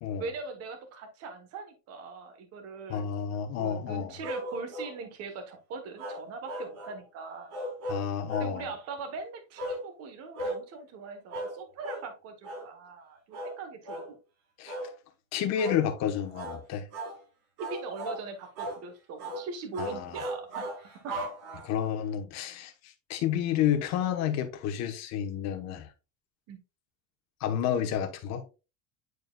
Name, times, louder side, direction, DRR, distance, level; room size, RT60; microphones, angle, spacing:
voice 1, 0.2-3.0 3.6-7.5 8.4-14.2 17.6-20.7 21.0-21.3 26.5-26.6, right 4 dB, 40° right, 1.1 m, -41 dB
voice 2, 2.9-4.1 7.9-8.7 14.6-14.8 15.3-16.9 19.8-20.2 21.7-25.9 27.4-28.4, left 9 dB, 40° left, 1.0 m, -30 dB
sound 1, 4.2-5.0 6.0-7.0 7.5-8.5 9.6-9.8 10.3-10.6 11.3-11.6 11.8-12.1 12.4-12.7 13.3-13.6 13.8-14.1 14.7-14.9 15.6-15.8 16.3-16.6 16.9-17.2 17.6-18.2 18.6-18.8 19.2-19.4 19.7-21.9, right 1 dB, 85° right, 4.1 m, -36 dB
9.3 x 4.7 x 2.2 m
cardioid pair, 165°, 40 cm